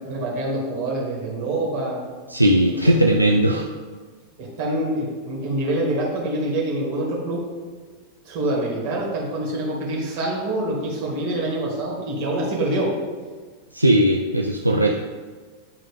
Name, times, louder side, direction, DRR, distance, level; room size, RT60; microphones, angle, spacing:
voice 1, 0.0-2.0 4.4-7.4 8.3-12.9, right 1 dB, 50° right, -3 dB, 2.1 m, -25 dB
voice 2, 2.3-3.6 13.7-14.9, right 1 dB, 85° right, 1 dB, 0.4 m, -18 dB
10.0 x 3.6 x 3.5 m, 1.5 s
figure-of-eight pair, 90°, 0 cm